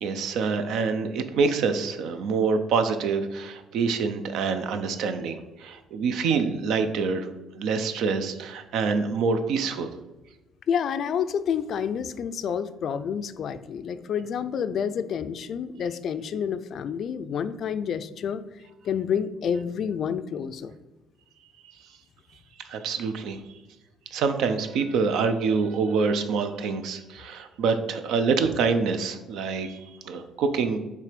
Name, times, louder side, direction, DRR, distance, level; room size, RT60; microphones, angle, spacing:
voice 1, 0.0-7.3 7.6-9.9 22.6-23.4 24.1-30.8, right 5 dB, 70° right, 9 dB, 0.6 m, -26 dB
voice 2, 10.7-18.4 18.8-20.8, left 7 dB, 55° left, 12 dB, 0.4 m, -29 dB
6.5 x 3.3 x 5.1 m, 1.1 s
cardioid pair, 120°, 0 cm